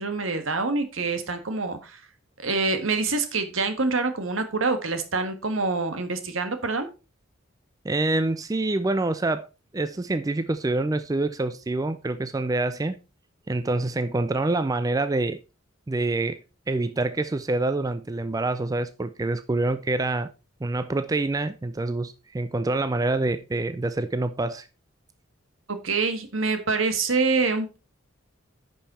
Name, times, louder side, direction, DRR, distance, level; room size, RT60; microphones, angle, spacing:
voice 1, 0.0-2.0 2.4-6.9 25.7-27.8, right 3 dB, 70° right, 1.6 m, -26 dB
voice 2, 7.8-9.5 9.7-13.0 13.5-15.4 15.9-16.4 16.7-20.3 20.6-24.7, right 2 dB, 15° right, 0.4 m, -26 dB
10.0 x 5.4 x 4.2 m
head